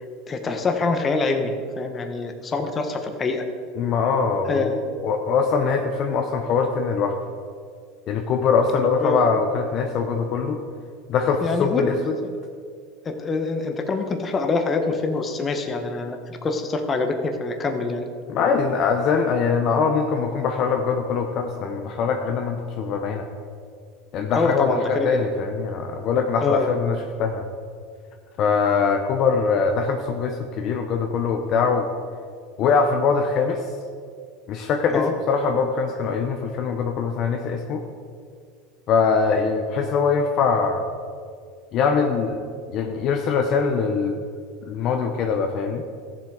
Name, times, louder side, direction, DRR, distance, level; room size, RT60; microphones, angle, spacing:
voice 1, 0.3-3.4 4.5-4.9 8.7-9.2 11.4-12.0 13.0-18.0 24.3-25.1 26.4-26.7 34.9-35.1, left 3 dB, 25° left, 6 dB, 1.2 m, -25 dB
voice 2, 3.8-4.7 5.0-7.2 8.1-10.6 11.1-12.1 18.3-23.2 24.1-27.5 28.4-31.9 32.6-33.6 34.5-37.8 38.9-40.8 41.7-42.4 42.7-44.1 44.7-45.8, left 5 dB, 45° left, 4 dB, 0.9 m, -22 dB
14.5 x 7.2 x 4.9 m, 2.2 s
supercardioid pair, 120°, 0 cm